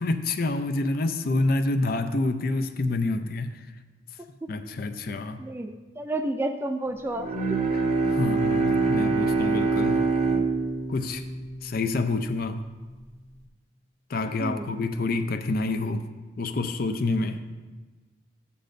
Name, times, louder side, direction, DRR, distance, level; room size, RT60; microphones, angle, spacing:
voice 1, 0.0-3.5 4.5-5.4 8.1-10.0 10.9-11.2 11.6-12.6 14.1-16.0 16.4-17.4, left 2 dB, 50° left, 8 dB, 0.5 m, -27 dB
voice 2, 5.4-7.6 14.4-14.7, right 1 dB, 10° right, 6 dB, 0.3 m, -31 dB
Bowed string instrument, 7.1-12.5, right 4 dB, 35° right, 0.7 m, -25 dB
13.0 x 8.5 x 2.6 m, 1.3 s
head